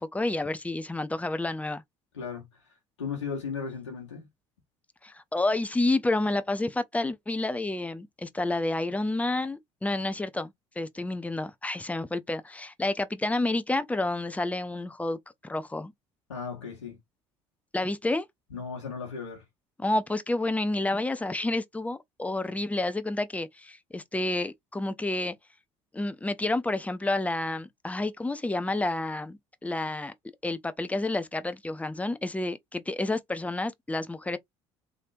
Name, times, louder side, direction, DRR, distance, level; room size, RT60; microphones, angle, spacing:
voice 1, 0.0-1.8 5.0-15.9 17.7-18.3 19.8-25.4 25.9-30.1 30.4-34.4, left 2 dB, 10° left, 0.6 m, -29 dB
voice 2, 2.1-2.6 3.0-4.3 16.3-17.0 18.5-19.4, left 5 dB, 80° left, 1.2 m, -36 dB
3.3 x 2.7 x 2.6 m
figure-of-eight pair, 60°, 15 cm